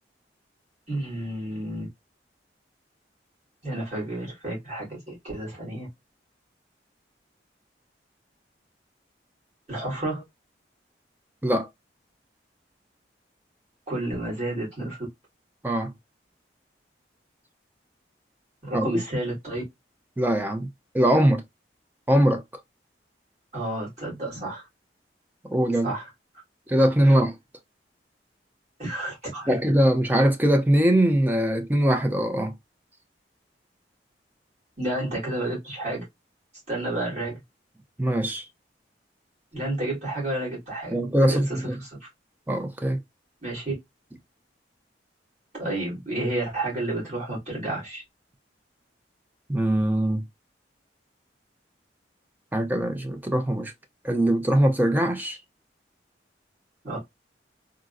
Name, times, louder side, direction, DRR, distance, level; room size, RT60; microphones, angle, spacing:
voice 1, 0.9-1.9 3.6-5.9 9.7-10.2 13.9-15.1 18.6-19.6 23.5-24.7 25.8-26.1 28.8-29.6 34.8-36.0 36.7-37.4 39.5-42.1 43.4-43.7 45.6-48.0 56.8-57.0, right 1 dB, 35° right, 1.8 m, -31 dB
voice 2, 20.2-20.7 20.9-21.4 22.1-22.4 25.4-25.9 26.7-27.3 29.5-32.5 38.0-38.5 40.9-41.8 42.5-43.0 49.5-50.2 52.5-53.7 54.0-55.4, right 1 dB, 10° right, 0.4 m, -22 dB
3.7 x 2.0 x 2.5 m
head